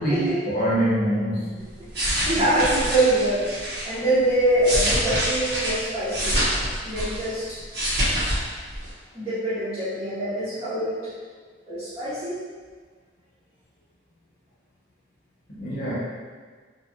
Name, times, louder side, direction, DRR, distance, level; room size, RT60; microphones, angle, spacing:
voice 1, 0.0-1.7 15.5-15.9, right 1 dB, 45° left, -8 dB, 0.8 m, -24 dB
sound 1, 1.7-3.9 4.4-7.3 7.6-8.4 8.7-8.9, equal, 55° right, 0.9 m, -25 dB
voice 2, 2.3-3.5 3.8-6.4 6.8-7.6 9.1-11.1 11.7-12.4, right 1 dB, 20° right, -16 dB, 0.9 m, -24 dB
2.9 x 2.4 x 2.9 m, 1.5 s
head